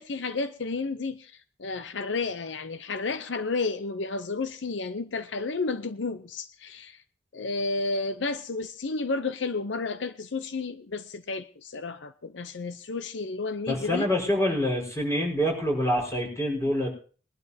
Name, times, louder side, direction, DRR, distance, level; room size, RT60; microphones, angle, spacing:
voice 1, 0.0-7.0 7.3-14.1, left 3 dB, 80° left, 0.7 m, -32 dB
voice 2, 13.7-16.9, equal, 15° left, 5.1 m, -26 dB
21.5 x 12.0 x 2.8 m
head